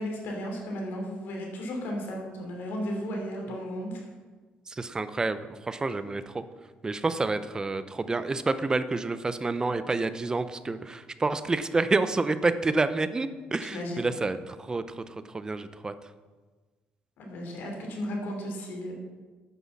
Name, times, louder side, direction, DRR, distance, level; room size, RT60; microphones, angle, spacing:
voice 1, 0.0-4.0 13.6-14.1 17.2-19.1, equal, 70° left, 1 dB, 3.0 m, -34 dB
voice 2, 4.7-6.4 6.8-15.9, right 3 dB, 20° right, 12 dB, 0.6 m, -29 dB
9.4 x 6.1 x 7.2 m, 1.4 s
cardioid pair, 110°, 4 cm